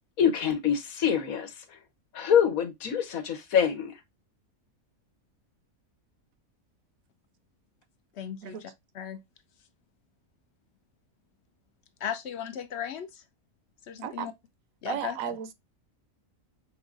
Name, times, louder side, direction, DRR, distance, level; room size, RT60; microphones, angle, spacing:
voice 1, 0.2-1.8 2.1-3.9, left 8 dB, 85° left, 1.4 m, -25 dB
voice 2, 8.1-9.2 12.0-13.2 13.9-14.3 14.8-15.2, left 9 dB, 60° left, 0.8 m, -36 dB
voice 3, 14.0-14.3 14.9-15.5, right 9 dB, 80° right, 1.1 m, -34 dB
5.5 x 3.4 x 2.4 m
omnidirectional pair, 1.4 m